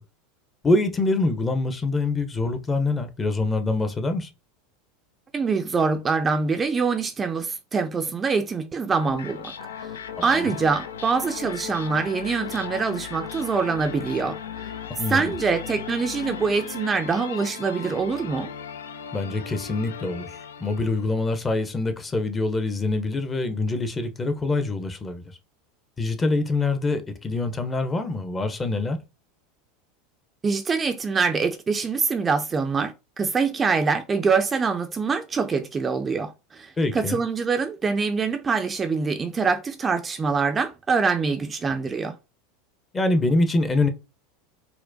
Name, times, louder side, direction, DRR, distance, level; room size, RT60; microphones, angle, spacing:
voice 1, 0.6-4.3 10.2-10.6 15.0-15.3 19.1-25.2 26.0-29.0 36.8-37.2 42.9-43.9, left 2 dB, 20° left, 0.6 m, -25 dB
voice 2, 5.3-9.5 9.8-9.9 10.2-14.7 15.1-18.5 30.4-42.2, right 5 dB, 25° right, 0.4 m, -24 dB
sound 1, 8.9-21.2, left 8 dB, 85° left, 0.3 m, -37 dB
4.3 x 2.1 x 2.6 m
hypercardioid pair, 90°, 0 cm